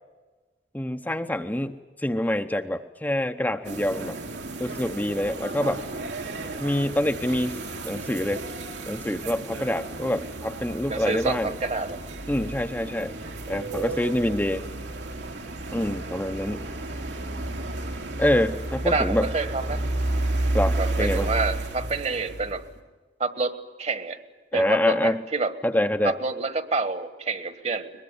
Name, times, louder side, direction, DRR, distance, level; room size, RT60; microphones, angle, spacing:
voice 1, 0.7-4.2 4.6-5.8 6.6-7.6 7.8-8.4 8.9-11.5 12.3-13.1 13.5-14.6 15.7-16.6 18.2-19.3 20.5-21.3 24.5-25.2 25.6-26.1, left 1 dB, 10° left, 6 dB, 0.8 m, -26 dB
sound 1, 3.6-22.7, right 2 dB, 85° right, 3.5 m, -32 dB
voice 2, 10.9-12.0 18.4-18.6 18.8-19.8 20.8-22.7 23.2-24.2 24.5-25.5 26.0-27.9, right 3 dB, 40° right, 12 dB, 1.5 m, -28 dB
22.5 x 21.0 x 9.8 m, 1.3 s
head